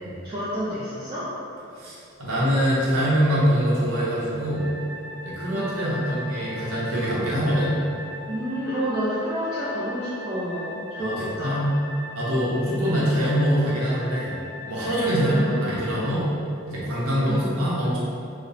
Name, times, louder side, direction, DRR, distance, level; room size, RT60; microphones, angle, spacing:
voice 1, 0.2-1.3 5.5-5.8 8.3-11.7 12.9-13.3 15.1-16.1 17.2-17.6, equal, 20° right, -12 dB, 0.4 m, -30 dB
voice 2, 1.8-4.7 5.2-7.8 11.0-11.1 11.4-11.7 12.2-14.3 14.7-16.2 16.7-18.0, equal, 85° right, -7 dB, 0.7 m, -24 dB
sound 1, 4.5-16.1, left 2 dB, 10° left, 0.7 m, -39 dB
2.9 x 2.0 x 2.6 m, 2.6 s
head